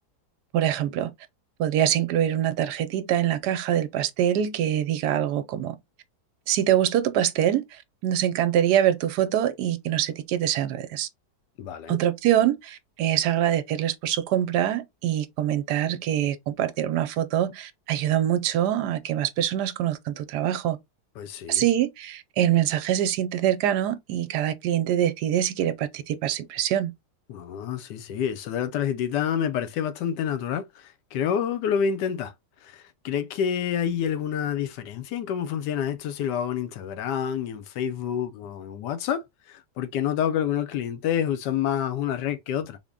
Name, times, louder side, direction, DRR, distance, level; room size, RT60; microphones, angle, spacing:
voice 1, 0.5-1.1 1.6-5.7 6.5-11.1 11.9-20.8 21.5-26.9, right 11 dB, 75° right, 1.1 m, -24 dB
voice 2, 11.6-12.0 21.2-21.6 27.3-32.3 32.6-42.8, left 8 dB, 85° left, 1.2 m, -28 dB
3.7 x 2.1 x 3.5 m
omnidirectional pair, 1.8 m